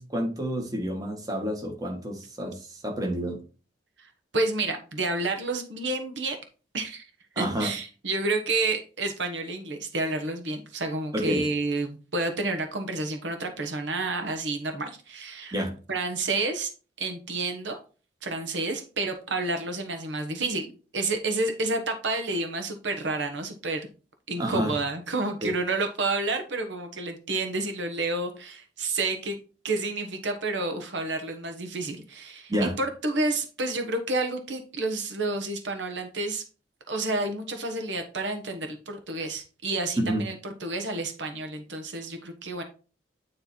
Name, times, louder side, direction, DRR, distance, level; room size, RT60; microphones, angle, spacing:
voice 1, 0.0-3.4 7.3-7.7 11.1-11.4 15.5-15.8 24.4-24.7 25.4-25.5 32.5-32.8 40.0-40.3, equal, 20° right, 2 dB, 1.4 m, -29 dB
voice 2, 4.0-6.4 6.7-7.0 7.4-15.5 15.9-16.7 17.0-17.8 18.2-23.9 24.3-29.4 29.6-36.4 36.9-42.6, right 2 dB, 75° right, 6 dB, 1.2 m, -30 dB
9.6 x 3.3 x 4.3 m, 0.35 s
head